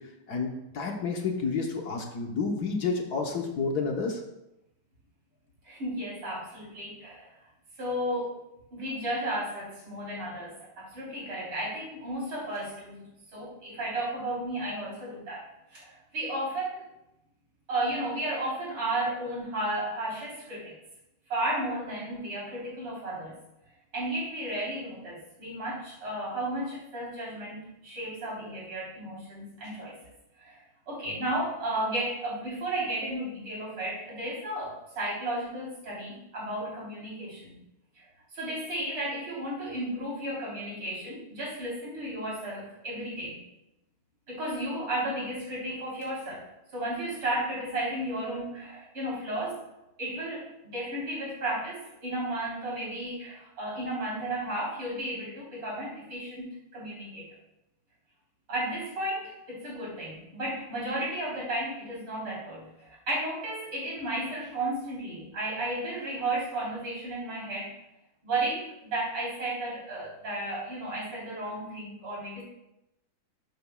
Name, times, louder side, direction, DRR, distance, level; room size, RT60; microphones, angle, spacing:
voice 1, 0.7-4.2, left 4 dB, 60° left, 2 dB, 1.3 m, -30 dB
voice 2, 5.6-7.3 7.8-8.4 8.7-13.1 13.3-15.4 15.7-16.8 17.7-20.8 21.3-23.4 23.9-30.0 30.4-37.6 37.9-38.0 38.3-43.4 44.3-46.4 46.7-49.6 50.0-57.4 58.5-67.7 68.2-72.4, right 1 dB, 90° right, -6 dB, 4.4 m, -33 dB
12.5 x 7.9 x 2.3 m, 0.89 s
omnidirectional pair, 2.2 m